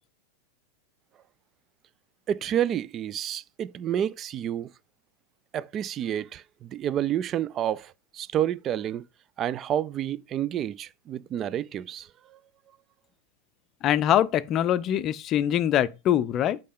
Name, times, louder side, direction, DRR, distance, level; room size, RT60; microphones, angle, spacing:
voice 1, 2.3-4.7 5.5-9.0 9.4-12.1, right 10 dB, 30° right, 0.4 m, -29 dB
voice 2, 13.8-16.6, left 11 dB, 35° left, 0.5 m, -23 dB
8.3 x 5.2 x 3.7 m
figure-of-eight pair, 90°, 0 cm